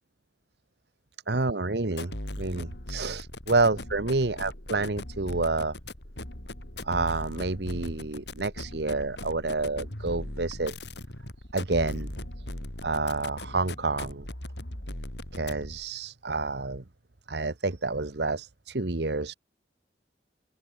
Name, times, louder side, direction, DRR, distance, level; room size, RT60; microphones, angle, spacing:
voice 1, 1.3-2.1 2.4-5.7 6.8-10.7 11.5-12.1 12.8-14.3 15.3-16.8 17.3-19.3, right 3 dB, 65° right, 1.3 m, -29 dB
sound 1, 1.9-15.9, left 1 dB, 70° left, 4.5 m, -39 dB
open air
head